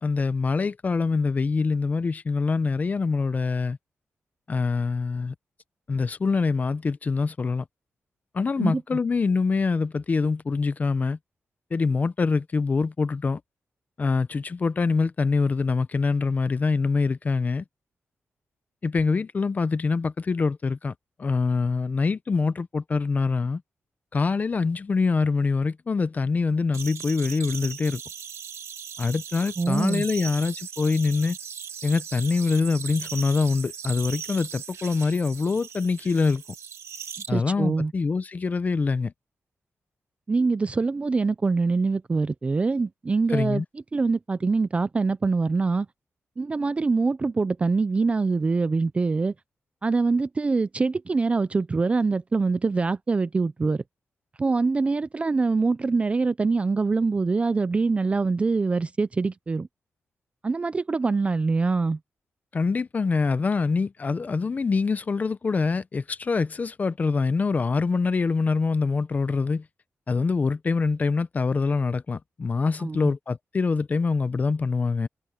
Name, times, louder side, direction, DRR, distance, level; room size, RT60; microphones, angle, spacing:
voice 1, 0.0-3.8 4.5-5.3 5.9-7.6 8.3-11.2 11.7-13.4 14.0-17.6 18.8-20.9 21.2-23.6 24.1-28.0 29.0-31.4 31.8-36.4 37.3-39.1 43.3-43.6 62.5-69.6 70.1-75.1, left 4 dB, 35° left, 0.6 m, -24 dB
sound 1, 26.7-37.3, right 7 dB, 80° right, 2.1 m, -38 dB
voice 2, 29.6-30.0 37.3-37.9 40.3-43.6 43.9-45.9 46.4-49.3 49.8-53.8 54.4-59.7 60.4-62.0 72.8-73.1, right 4 dB, 25° right, 0.4 m, -24 dB
wide cardioid pair, 145°, 5 cm